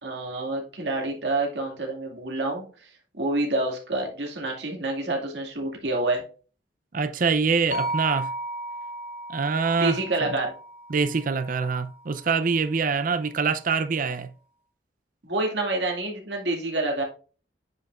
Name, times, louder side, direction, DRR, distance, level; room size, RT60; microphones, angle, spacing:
voice 1, 0.0-6.2 9.8-10.5 15.2-17.0, right 2 dB, 80° right, 2.1 m, -28 dB
voice 2, 6.9-8.3 9.3-10.3 10.9-14.3, right 5 dB, 50° right, 0.6 m, -25 dB
sound 1, 7.7-11.9, right 2 dB, 80° left, 2.7 m, -34 dB
9.3 x 5.4 x 2.4 m
head